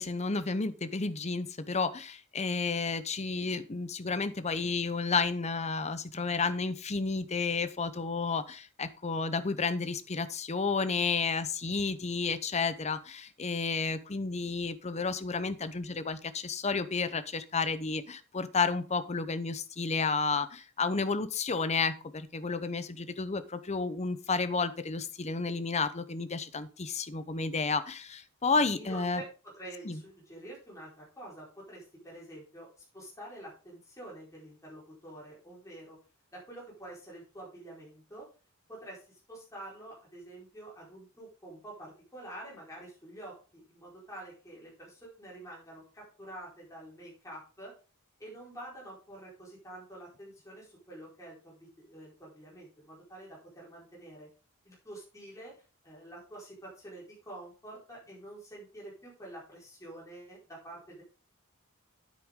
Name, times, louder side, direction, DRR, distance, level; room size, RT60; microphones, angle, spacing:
voice 1, 0.0-29.2 29.8-30.0, left 4 dB, 30° left, 13 dB, 0.8 m, -31 dB
voice 2, 28.8-32.7 32.9-36.0 36.3-38.3 38.7-47.7 48.2-54.3 54.6-55.5 55.8-61.0, right 1 dB, 15° left, -5 dB, 4.5 m, -47 dB
9.2 x 8.4 x 3.7 m, 0.35 s
head